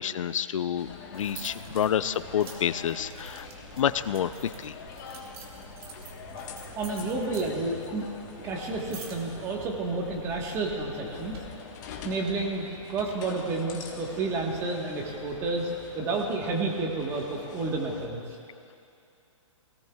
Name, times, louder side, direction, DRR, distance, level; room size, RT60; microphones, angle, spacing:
voice 1, 0.0-3.5 3.8-4.7, left 9 dB, 70° left, 14 dB, 0.5 m, -29 dB
sound 1, 0.8-18.1, left 5 dB, 35° left, 1.3 m, -44 dB
sound 2, 1.1-11.4, right 3 dB, 45° right, 1.8 m, -46 dB
voice 2, 6.7-11.4 12.0-15.7 15.9-18.4, right 3 dB, 15° right, 0 dB, 1.3 m, -30 dB
22.0 x 18.0 x 2.3 m, 2.6 s
hypercardioid pair, 165°, 17 cm